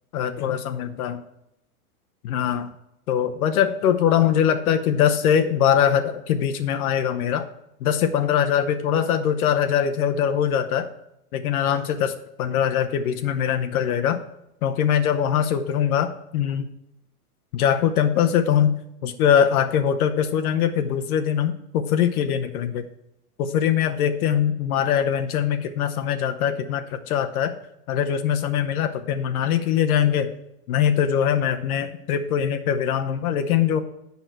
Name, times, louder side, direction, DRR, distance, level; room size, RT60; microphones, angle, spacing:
voice 1, 0.1-1.2 2.2-2.7 3.1-7.5 7.8-10.9 11.3-12.1 12.4-14.2 14.6-16.7 17.5-18.7 19.0-22.8 23.4-27.5 27.9-30.3 30.7-33.8, left 9 dB, 70° left, 6 dB, 0.8 m, -22 dB
8.1 x 5.8 x 4.5 m, 0.83 s
supercardioid pair, 135°, 45 cm